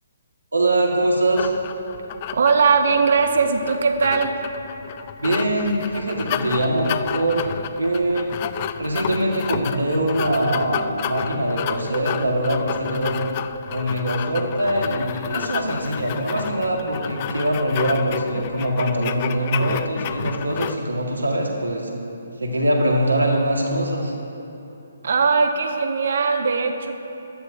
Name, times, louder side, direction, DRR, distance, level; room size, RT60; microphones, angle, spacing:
voice 1, 0.5-1.5 5.2-7.4 7.8-8.3 8.8-13.2 13.7-21.9 22.4-24.1, right 1 dB, 90° right, 0 dB, 1.9 m, -23 dB
sound 1, 1.4-20.8, left 10 dB, 35° left, 0.4 m, -31 dB
voice 2, 2.3-4.4 25.0-26.9, right 5 dB, 60° right, 6 dB, 1.0 m, -19 dB
15.5 x 11.5 x 2.8 m, 2.8 s
figure-of-eight pair, 140°, 0 cm